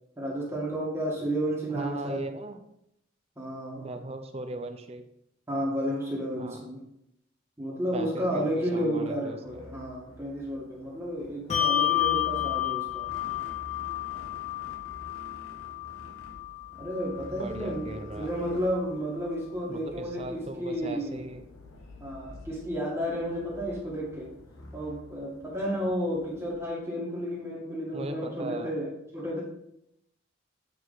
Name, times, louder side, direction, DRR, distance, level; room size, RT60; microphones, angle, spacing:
voice 1, 0.2-2.2 3.4-3.9 5.5-6.8 7.6-13.1 16.8-21.3 22.0-24.3 24.7-29.4, equal, 15° right, -5 dB, 1.7 m, -32 dB
voice 2, 1.7-2.6 3.8-5.1 6.4-6.7 7.9-9.6 17.3-18.3 19.7-21.4 27.9-28.7, right 2 dB, 30° right, 8 dB, 0.5 m, -38 dB
sound 1, 9.4-26.5, left 1 dB, 85° left, 1.1 m, -49 dB
Bell, 11.5-18.4, left 13 dB, 30° left, 0.7 m, -31 dB
8.4 x 4.7 x 4.0 m, 0.78 s
head